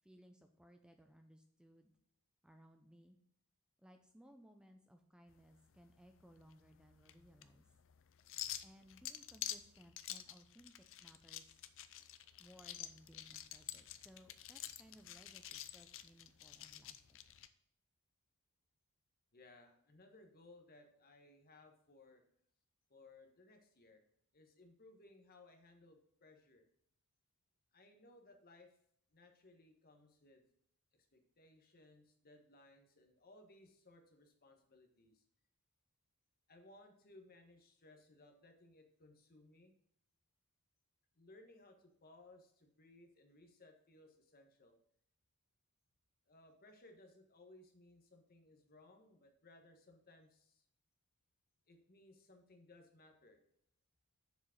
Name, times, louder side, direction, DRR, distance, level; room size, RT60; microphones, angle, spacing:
voice 1, 0.0-1.9 2.4-3.2 3.8-7.6 8.6-10.7 11.0-11.7 12.4-17.2, equal, 5° right, 5 dB, 0.5 m, -63 dB
sound 1, 5.3-17.5, left 12 dB, 60° left, 0.5 m, -49 dB
voice 2, 19.3-22.2 22.9-24.0 24.3-26.6 27.7-28.8 29.1-30.4 30.9-35.2 36.5-39.7 41.1-44.8 46.3-50.6 51.7-53.4, left 2 dB, 45° left, 4 dB, 1.4 m, -63 dB
7.0 x 5.0 x 6.5 m, 0.69 s
head